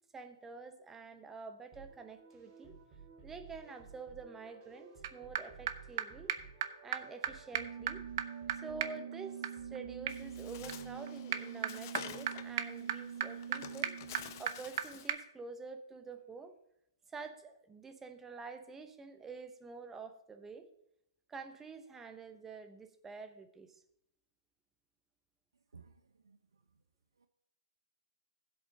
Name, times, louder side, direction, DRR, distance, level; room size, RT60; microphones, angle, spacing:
voice 1, 0.1-2.8 3.2-6.4 6.8-8.0 8.5-14.0 14.4-16.6 17.1-20.7 21.3-23.7, right 4 dB, 10° right, 8 dB, 0.8 m, -48 dB
sound 1, 1.7-11.8, right 5 dB, 35° right, 1.9 m, -55 dB
sound 2, 5.0-5.1 5.4-5.5 5.7-5.8 6.0-6.1 6.3-6.4 6.6-6.7 6.9-7.0 7.2-7.3 7.5-14.8 15.1-15.2, right 9 dB, 55° right, 0.7 m, -38 dB
Bird, 10.1-15.2, left 10 dB, 45° left, 0.7 m, -50 dB
voice 2, 25.7-26.6 27.2-27.3, right 5 dB, 85° right, 9 dB, 0.8 m, -59 dB
16.0 x 7.8 x 2.8 m, 0.77 s
hypercardioid pair, 130°, 2 cm